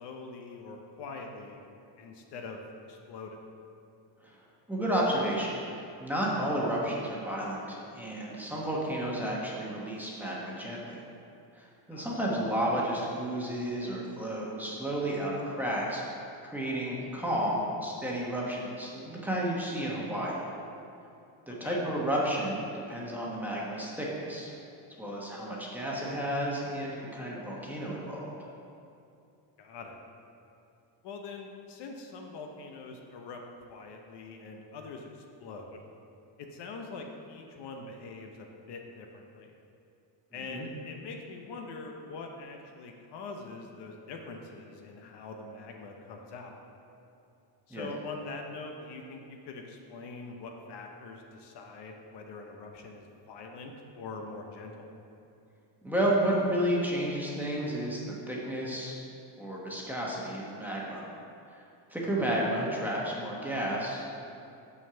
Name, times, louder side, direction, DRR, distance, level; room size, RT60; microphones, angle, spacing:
voice 1, 0.0-1.6 2.0-2.6 2.9-3.5 11.9-12.2 21.6-21.8 29.6-30.0 31.0-33.4 33.7-35.8 36.4-39.5 40.3-46.6 47.7-55.0 62.0-62.3, left 3 dB, 60° left, 2 dB, 0.9 m, -43 dB
voice 2, 4.7-11.0 11.5-16.0 16.4-20.5 21.5-24.5 25.0-28.3 40.5-40.7 47.7-47.9 55.8-58.0 58.3-58.9 59.4-61.1 61.5-61.6 61.9-64.2, right 1 dB, 5° right, -5 dB, 1.2 m, -32 dB
6.2 x 5.5 x 6.9 m, 2.6 s
cardioid pair, 145°, 47 cm